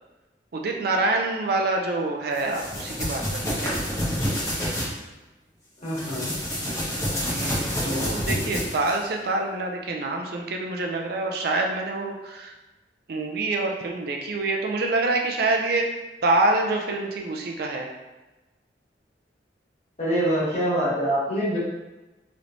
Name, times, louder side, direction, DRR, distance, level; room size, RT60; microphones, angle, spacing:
voice 1, 0.5-3.8 7.0-12.5 13.1-15.9 16.2-17.9, right 2 dB, 60° right, 2 dB, 0.4 m, -26 dB
sound 1, 2.4-4.9 5.9-9.0, equal, 15° left, 0.9 m, -28 dB
voice 2, 5.8-6.3 7.8-8.4 20.0-21.6, equal, 40° left, -9 dB, 1.4 m, -26 dB
3.2 x 3.1 x 2.5 m, 1.1 s
head